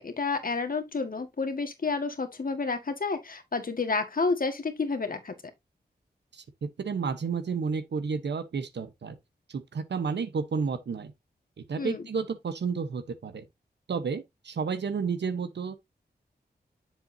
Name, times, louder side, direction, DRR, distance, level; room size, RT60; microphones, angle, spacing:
voice 1, 0.0-5.3 11.8-12.1, left 4 dB, 55° left, 1.7 m, -30 dB
voice 2, 6.3-9.2 9.5-11.1 11.6-13.4 13.9-15.7, right 5 dB, 85° right, 1.0 m, -31 dB
7.4 x 7.1 x 2.7 m
wide cardioid pair, 65°, 18 cm